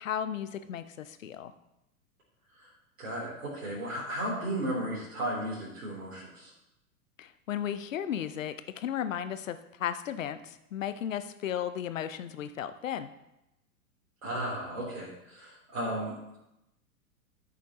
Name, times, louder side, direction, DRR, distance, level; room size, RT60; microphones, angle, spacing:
voice 1, 0.0-1.5 7.2-13.1, left 9 dB, 60° left, 11 dB, 0.8 m, -35 dB
voice 2, 3.0-6.5 14.2-16.4, right 1 dB, 60° right, -6 dB, 3.7 m, -35 dB
13.5 x 7.0 x 3.1 m, 0.89 s
figure-of-eight pair, 100°, 45 cm